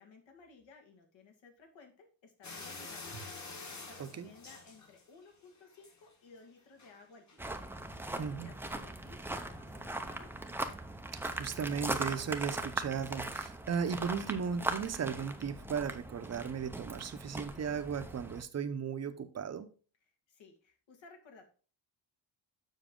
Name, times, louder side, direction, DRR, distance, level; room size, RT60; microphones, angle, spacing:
voice 1, 0.0-3.3 3.6-7.5 7.8-10.4 20.3-21.5, left 4 dB, 75° left, 2.1 m, -58 dB
sound 1, 2.4-5.3 5.7-6.1 6.8-6.9 7.3-7.4, left 3 dB, 35° left, 1.7 m, -47 dB
voice 2, 4.0-4.3 8.2-8.5 11.2-19.7, right 6 dB, 35° right, 0.7 m, -36 dB
sound 2, 7.4-18.4, right 2 dB, 5° right, 0.5 m, -40 dB
7.2 x 6.1 x 3.7 m
cardioid pair, 130°, 46 cm